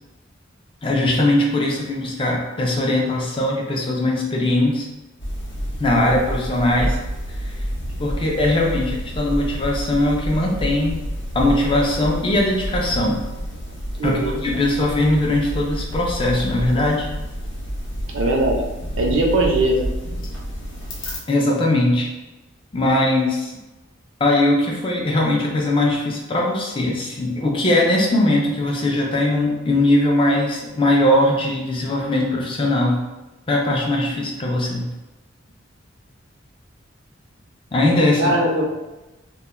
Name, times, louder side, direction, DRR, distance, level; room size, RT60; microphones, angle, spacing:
voice 1, 0.8-4.8 5.8-7.0 7.4-7.6 8.0-11.0 11.3-13.2 14.0-17.1 21.3-22.1 22.7-23.5 24.2-33.0 33.5-34.9 37.7-38.3, left 1 dB, 25° left, -1 dB, 0.4 m, -20 dB
sound 1, 5.2-21.2, equal, 65° left, 0.7 m, -29 dB
voice 2, 14.0-14.4 18.1-18.6 18.9-19.9 38.2-38.7, right 1 dB, 65° right, 0 dB, 0.5 m, -20 dB
2.3 x 2.1 x 3.0 m, 1.0 s
head